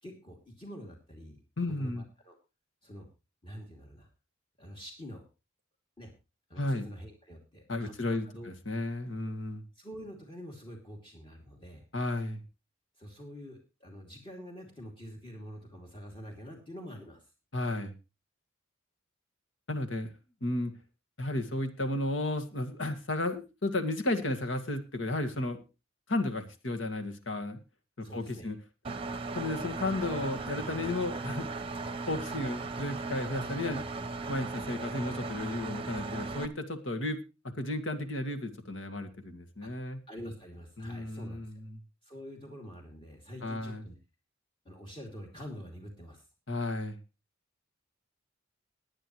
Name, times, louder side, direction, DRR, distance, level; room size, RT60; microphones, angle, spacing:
voice 1, 0.0-2.4 2.8-3.1 3.4-4.1 4.6-5.3 6.0-6.1 6.5-7.9 8.2-8.5 9.2-9.3 9.7-11.8 13.0-17.3 28.0-28.5 39.6-39.7 40.1-41.5 42.0-43.9 44.6-46.2, equal, 25° left, 2 dB, 2.7 m, -46 dB
voice 2, 1.6-2.0 6.6-6.9 7.7-9.6 11.9-12.4 17.5-17.9 19.7-20.1 20.4-20.7 21.2-25.6 26.1-27.6 28.0-28.6 28.9-29.0 29.3-31.5 32.1-33.9 34.3-37.2 37.4-40.0 40.8-41.5 43.4-43.8 46.5-47.0, left 2 dB, 65° left, 6 dB, 2.0 m, -33 dB
Engine, 28.8-36.5, right 3 dB, 25° right, 0.9 m, -37 dB
19.5 x 10.0 x 3.2 m, 0.29 s
head